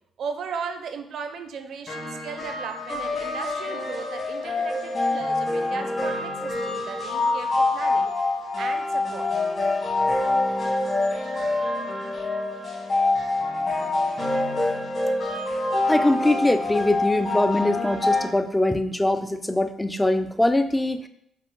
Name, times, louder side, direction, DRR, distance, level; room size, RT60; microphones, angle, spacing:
voice 1, 0.2-8.1 8.6-9.3, right 5 dB, 65° right, 7 dB, 0.5 m, -36 dB
sound 1, 1.9-18.3, left 2 dB, 45° left, 1.6 m, -26 dB
voice 2, 15.9-21.1, left 1 dB, 10° left, 9 dB, 0.3 m, -22 dB
5.4 x 2.0 x 3.8 m, 0.75 s
cardioid pair, 90°, 0 cm